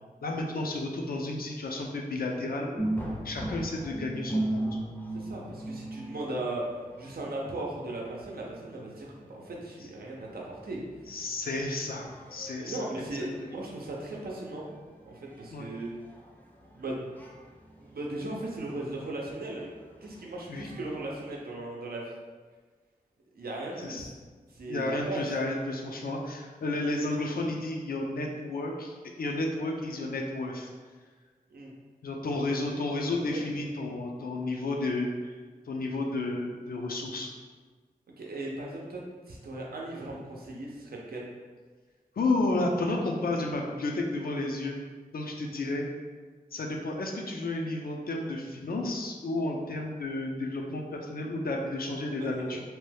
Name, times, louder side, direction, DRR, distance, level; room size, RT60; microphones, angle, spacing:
voice 1, 0.2-2.9 3.2-4.6 11.1-12.8 15.5-15.7 20.5-20.7 23.8-24.1 24.7-30.7 32.0-35.3 35.6-37.3 42.2-44.8 45.1-45.9 46.5-52.6, left 2 dB, 75° left, 1 dB, 0.5 m, -32 dB
sound 1, 2.8-21.4, right 1 dB, 10° left, 0.5 m, -39 dB
voice 2, 5.1-6.6 7.0-10.8 12.6-14.7 15.0-15.9 16.7-17.1 17.8-19.7 20.0-22.1 23.3-24.1 24.5-25.2 31.5-31.7 33.3-33.4 38.2-39.0 39.3-41.3 52.2-52.6, right 2 dB, 90° right, -2 dB, 0.6 m, -37 dB
2.8 x 2.2 x 3.3 m, 1.4 s
wide cardioid pair, 80°, 15 cm